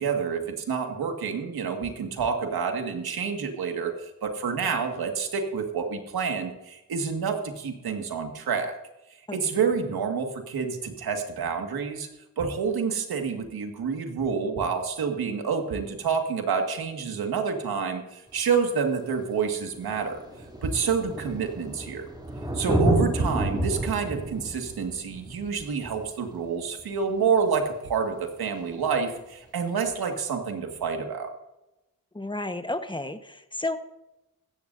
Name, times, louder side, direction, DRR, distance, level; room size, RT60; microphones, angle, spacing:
voice 1, 0.0-8.8 9.3-12.1 12.4-20.2 20.6-22.0 22.5-31.3, right 6 dB, 85° right, 4 dB, 2.0 m, -28 dB
Thunder, 18.4-18.5 19.4-19.5 19.7-27.0 28.7-28.8, right 1 dB, 10° right, 3.1 m, -30 dB
voice 2, 32.1-33.8, left 2 dB, 15° left, 8 dB, 1.3 m, -32 dB
16.0 x 14.0 x 2.7 m, 0.93 s
cardioid pair, 60°, 36 cm